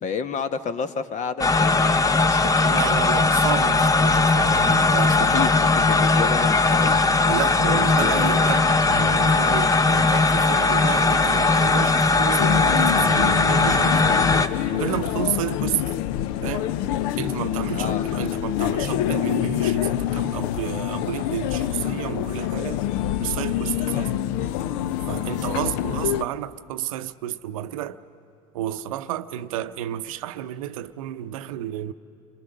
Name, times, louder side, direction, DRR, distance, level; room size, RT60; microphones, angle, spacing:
voice 1, 0.0-2.4 5.0-7.0 7.7-8.6 17.7-18.1 25.2-25.6, left 6 dB, 45° left, 1.2 m, -30 dB
sound 1, 1.4-14.5, left 3 dB, 20° left, 0.8 m, -19 dB
voice 2, 2.6-5.5 7.2-14.0 14.7-15.8 16.4-16.7 17.2-22.8 23.2-24.2 25.1-28.0 28.5-31.9, right 12 dB, 80° right, 0.7 m, -31 dB
sound 2, 12.4-26.2, left 12 dB, 65° left, 0.6 m, -26 dB
28.0 x 23.0 x 6.6 m
hypercardioid pair, 80°, 17 cm